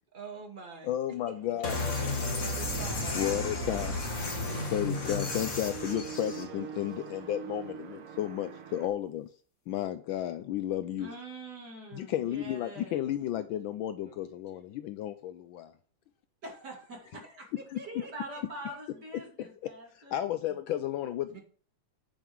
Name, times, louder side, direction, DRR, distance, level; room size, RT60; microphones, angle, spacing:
voice 1, 0.1-0.9 1.5-1.6 2.4-4.0 14.0-14.7 17.7-18.4 18.6-18.7 21.3-21.4, right 4 dB, 25° right, 3 dB, 1.6 m, -47 dB
voice 2, 0.8-1.8 3.1-4.0 4.7-9.3 9.7-11.1 11.9-15.7 20.1-21.4, left 12 dB, 75° left, 10 dB, 1.2 m, -33 dB
sound 1, 1.6-6.4, left 2 dB, 35° left, 1.8 m, -33 dB
sound 2, 2.6-8.9, right 7 dB, 90° right, 2.1 m, -42 dB
voice 3, 11.0-13.0 16.4-17.4 17.9-20.1, right 1 dB, 50° right, -1 dB, 3.5 m, -44 dB
9.0 x 5.4 x 4.6 m, 0.43 s
omnidirectional pair, 2.4 m